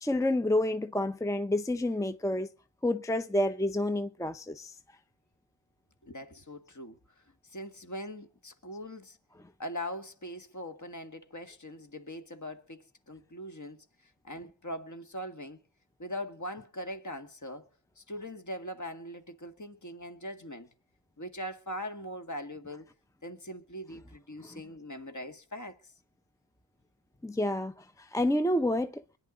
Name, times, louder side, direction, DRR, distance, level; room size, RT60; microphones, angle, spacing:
voice 1, 0.0-2.5 2.8-4.7 24.4-24.6 27.2-27.7 28.0-29.0, left 1 dB, 5° left, 0.7 m, -29 dB
voice 2, 6.0-9.2 9.6-13.9 14.2-15.6 16.0-17.7 18.0-20.7 21.2-22.9 23.2-25.9, equal, 40° left, 2.0 m, -41 dB
23.5 x 10.5 x 3.9 m
cardioid pair, 55°, 45 cm